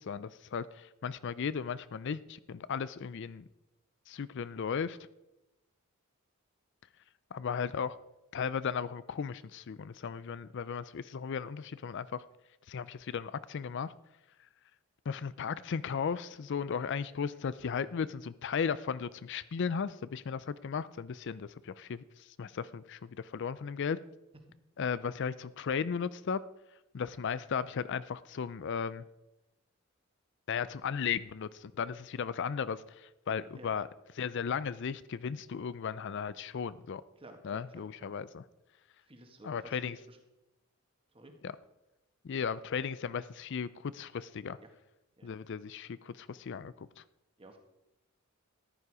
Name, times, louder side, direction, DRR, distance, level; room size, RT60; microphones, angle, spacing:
voice 1, 0.0-3.5 4.1-5.0 7.3-8.0 8.3-12.2 12.7-13.9 15.1-22.0 22.4-24.0 24.8-26.4 26.9-29.0 30.5-33.9 34.2-37.0 37.4-38.4 39.4-40.0 41.4-41.5 42.2-44.6 45.2-47.0, left 6 dB, 55° left, 17 dB, 0.4 m, -36 dB
voice 2, 37.2-37.9 39.0-40.2 41.1-41.3 44.6-44.7 45.2-45.3 47.4-47.6, right 1 dB, 25° right, 4 dB, 1.9 m, -53 dB
14.0 x 11.0 x 4.9 m, 0.97 s
head